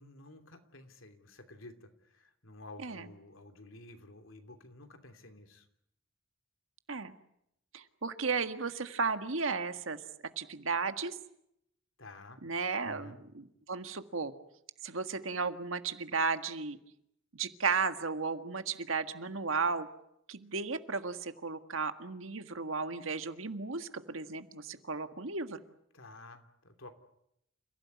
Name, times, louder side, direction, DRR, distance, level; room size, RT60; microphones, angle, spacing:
voice 1, 0.0-5.6 12.0-12.4 12.8-13.2 25.9-26.9, left 2 dB, 90° left, 7 dB, 3.0 m, -52 dB
voice 2, 7.7-10.0 10.4-11.1 12.4-14.3 14.8-16.8 17.3-19.9 20.3-25.6, right 4 dB, 85° right, 9 dB, 1.7 m, -34 dB
29.0 x 16.5 x 9.6 m, 0.79 s
head